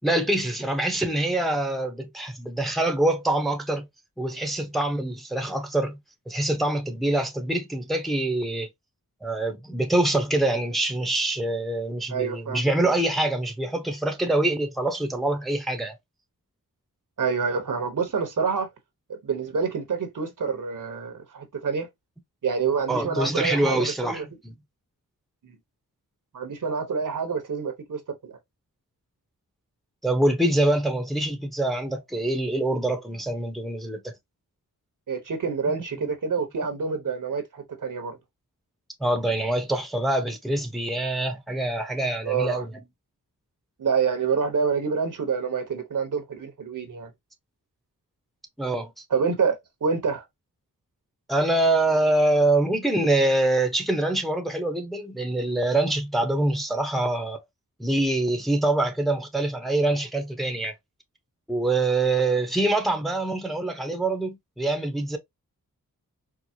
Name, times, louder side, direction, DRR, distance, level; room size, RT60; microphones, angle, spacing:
voice 1, 0.0-3.9 4.2-6.0 6.3-8.7 9.2-16.0 22.9-24.5 30.0-34.1 39.0-42.7 48.6-48.9 51.3-57.4 57.8-60.8 61.5-65.2, right 2 dB, ahead, 0.8 m, -25 dB
voice 2, 12.1-12.6 17.2-18.7 19.1-21.9 22.4-24.3 25.4-25.5 26.3-28.3 35.1-38.2 42.2-42.6 43.8-47.1 49.1-50.2, right 5 dB, 65° right, 1.0 m, -27 dB
4.7 x 2.0 x 2.7 m
cardioid pair, 55°, 34 cm